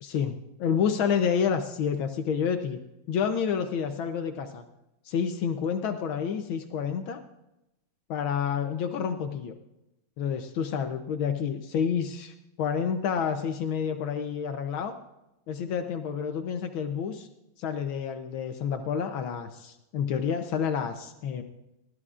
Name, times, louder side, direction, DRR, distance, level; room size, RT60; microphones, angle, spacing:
voice 1, 0.0-2.8 3.1-4.6 5.0-7.2 8.1-9.5 10.2-14.9 15.5-17.3 17.6-21.4, left 7 dB, 75° left, 7 dB, 1.6 m, -29 dB
20.0 x 14.0 x 2.5 m, 0.90 s
omnidirectional pair, 2.3 m